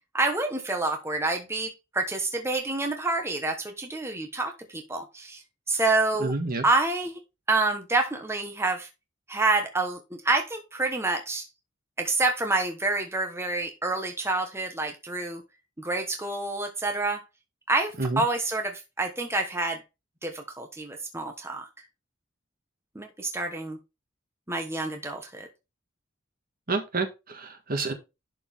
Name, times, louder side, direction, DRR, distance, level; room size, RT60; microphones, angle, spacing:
voice 1, 0.1-5.4 5.7-6.3 6.6-7.2 7.5-8.9 9.3-11.5 12.0-15.4 15.8-17.2 17.7-19.8 20.2-21.7 22.9-23.8 24.5-25.5, right 2 dB, 15° right, 1.1 m, -28 dB
voice 2, 6.2-6.7 18.0-18.2 26.7-27.9, right 3 dB, 50° right, 1.7 m, -29 dB
11.5 x 4.5 x 3.5 m
head